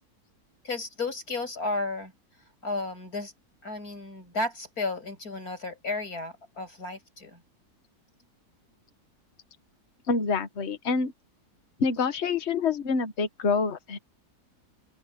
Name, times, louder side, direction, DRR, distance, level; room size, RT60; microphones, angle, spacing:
voice 1, 0.6-2.1 2.6-3.3 3.6-7.4, left 3 dB, 65° left, 8.6 m, -33 dB
voice 2, 10.1-11.1 11.8-14.0, left 4 dB, 45° left, 1.6 m, -26 dB
open air
omnidirectional pair, 1.7 m